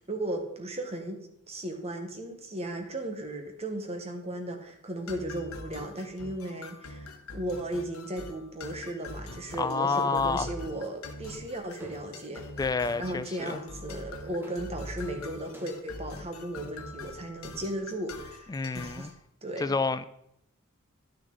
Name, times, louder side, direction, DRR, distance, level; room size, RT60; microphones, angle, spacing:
voice 1, 0.1-1.2 1.5-12.4 13.0-19.1 19.4-19.7, right 1 dB, 30° right, 1.3 m, -36 dB
sound 1, 4.0-4.1 4.7-4.8 5.3-5.6 5.9-6.1 6.5-8.5 8.8-10.3 10.6-10.9 11.2-16.3, right 1 dB, 10° right, 1.3 m, -53 dB
sound 2, 5.1-19.1, left 2 dB, 85° left, 1.0 m, -44 dB
voice 2, 9.6-10.5 12.6-13.6 18.5-19.1 19.6-20.0, left 4 dB, 20° left, 0.3 m, -28 dB
11.0 x 6.5 x 3.9 m
head